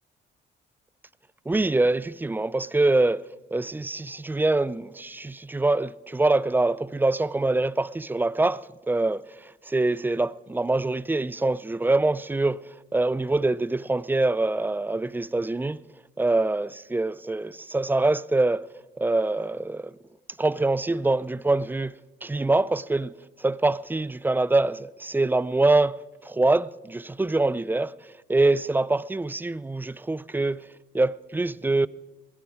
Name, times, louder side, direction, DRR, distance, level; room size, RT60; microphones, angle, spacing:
voice 1, 1.5-3.3 3.5-15.8 16.2-18.7 19.0-20.0 20.4-23.1 23.4-30.7 30.9-31.9, right 2 dB, 10° right, 0.3 m, -24 dB
19.5 x 11.0 x 4.8 m
cardioid pair, 90°, 20 cm